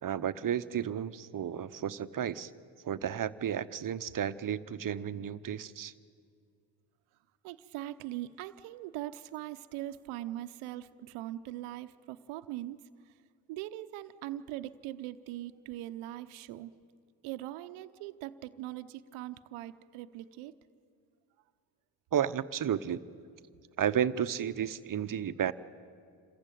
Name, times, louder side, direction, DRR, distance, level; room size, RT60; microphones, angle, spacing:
voice 1, 0.0-2.5 2.8-5.9 22.1-23.0 23.8-25.5, right 9 dB, 40° right, 14 dB, 0.9 m, -32 dB
voice 2, 7.4-12.8 13.0-13.1 13.5-16.7 17.2-20.5, right 14 dB, 80° right, 10 dB, 0.8 m, -41 dB
27.0 x 15.0 x 9.1 m, 2.2 s
supercardioid pair, 65°, 49 cm